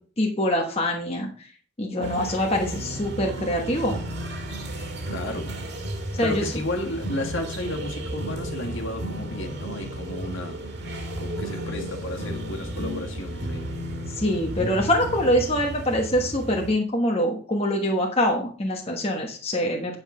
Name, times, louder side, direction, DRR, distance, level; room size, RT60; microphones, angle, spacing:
voice 1, 0.2-1.5 1.8-4.0 6.1-6.4 14.1-20.0, equal, 30° left, 1.2 m, -24 dB
sound 1, 2.0-16.7, right 1 dB, 50° right, 2.0 m, -33 dB
voice 2, 5.1-5.7 5.9-10.7 11.2-13.8, left 1 dB, 60° left, 1.9 m, -33 dB
9.5 x 6.3 x 5.0 m
head